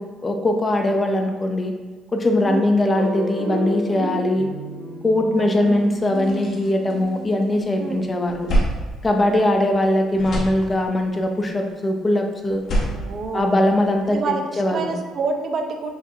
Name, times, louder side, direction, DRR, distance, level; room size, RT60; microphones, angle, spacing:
voice 1, 0.0-1.7 2.1-4.5 5.0-8.5 9.0-12.6 13.3-14.9, left 1 dB, 20° left, 4 dB, 0.5 m, -21 dB
voice 2, 2.4-2.8 5.2-5.9 7.8-8.1 12.9-13.6 14.0-15.9, right 4 dB, 50° right, 4 dB, 0.6 m, -28 dB
sound 1, 2.9-7.5, right 1 dB, 65° right, 1.1 m, -31 dB
sound 2, 6.1-7.6 8.0-9.8 10.1-11.2 12.4-14.1, right 1 dB, 50° left, 1.0 m, -27 dB
5.9 x 2.6 x 2.7 m, 1.4 s
cardioid pair, 110°, 0 cm